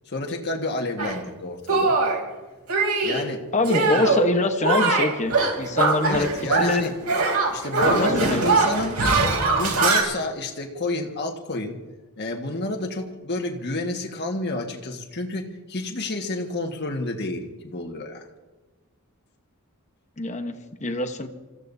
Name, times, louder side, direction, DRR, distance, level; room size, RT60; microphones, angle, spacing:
voice 1, 0.1-2.0 3.0-3.4 3.9-4.1 6.0-6.9 7.5-11.8 12.2-18.2, left 2 dB, 50° left, 1 dB, 1.7 m, -30 dB
Shatter, 1.0-1.2 1.7-2.2 2.7-3.2 3.6-4.3 4.6-6.8 7.0-10.0, right 3 dB, 85° right, 3.3 m, -21 dB
voice 2, 3.5-6.3 6.6-6.9 7.8-8.4 20.2-21.3, left 2 dB, 35° left, 7 dB, 1.1 m, -24 dB
28.0 x 15.5 x 2.7 m, 1.2 s
head